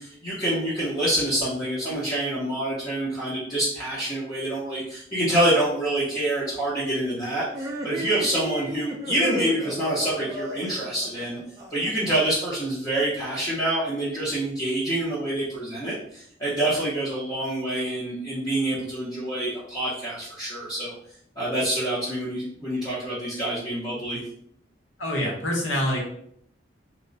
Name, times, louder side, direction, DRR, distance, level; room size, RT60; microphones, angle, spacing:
voice 1, 0.0-11.4 11.7-20.9 21.4-24.2, right 1 dB, 20° left, -8 dB, 0.7 m, -26 dB
sound 1, 7.5-12.1, equal, 15° right, 0.4 m, -34 dB
voice 2, 25.0-26.0, equal, 85° left, -1 dB, 1.0 m, -25 dB
3.0 x 2.1 x 3.9 m, 0.69 s
head